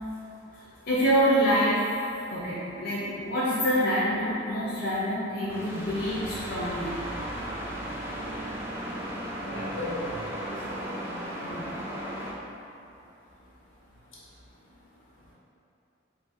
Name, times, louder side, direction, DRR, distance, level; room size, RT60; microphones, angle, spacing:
voice 1, 0.5-2.0 2.3-6.9 11.4-11.7, equal, 50° left, -9 dB, 0.5 m, -26 dB
sound 1, 5.5-12.3, right 1 dB, 10° right, 0.3 m, -35 dB
voice 2, 9.4-11.2, left 1 dB, 85° left, -7 dB, 0.9 m, -37 dB
2.7 x 2.5 x 4.0 m, 2.7 s
head